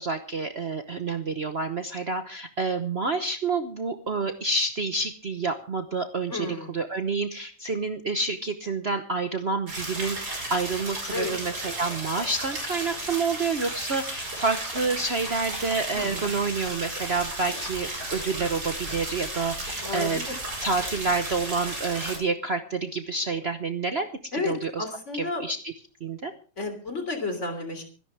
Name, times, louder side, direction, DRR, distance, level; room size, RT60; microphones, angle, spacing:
voice 1, 0.0-6.5 6.7-20.2 20.6-24.1 24.4-24.8 25.1-25.7 26.0-26.3, right 3 dB, 40° right, 8 dB, 1.1 m, -28 dB
voice 2, 6.3-6.7 11.1-11.3 15.9-16.4 19.8-20.4 24.3-25.4 26.6-27.8, left 3 dB, 40° left, 7 dB, 3.6 m, -32 dB
sound 1, 9.7-22.2, right 1 dB, 60° right, 6.0 m, -34 dB
25.5 x 11.0 x 3.4 m, 0.37 s
omnidirectional pair, 1.9 m